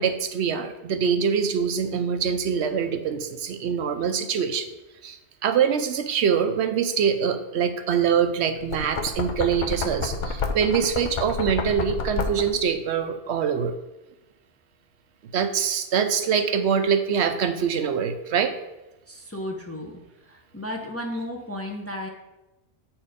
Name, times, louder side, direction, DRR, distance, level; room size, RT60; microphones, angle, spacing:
voice 1, 0.0-4.7 5.0-13.7 15.3-18.5, right 7 dB, 75° right, 8 dB, 0.9 m, -24 dB
Knock, 8.6-12.7, left 4 dB, 50° left, 0.7 m, -30 dB
voice 2, 19.1-20.0 20.3-22.1, left 1 dB, 15° left, 1 dB, 0.6 m, -33 dB
7.8 x 4.5 x 5.0 m, 1.0 s
omnidirectional pair, 1.2 m